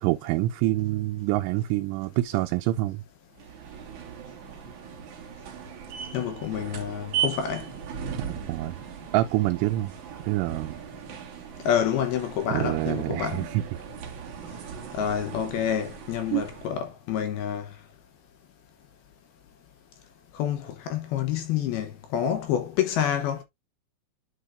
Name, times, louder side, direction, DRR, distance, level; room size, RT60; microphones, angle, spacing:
voice 1, 0.0-3.0 8.1-8.8 9.1-9.9 10.3-10.8 12.5-13.6 16.3-16.4, right 16 dB, 85° right, 3.1 m, -26 dB
sound 1, 3.4-16.9, right 8 dB, 55° right, 2.3 m, -38 dB
voice 2, 6.1-7.7 11.7-13.5 14.9-17.7 20.3-23.4, left 9 dB, 75° left, 2.3 m, -28 dB
11.0 x 4.8 x 2.5 m
omnidirectional pair, 5.6 m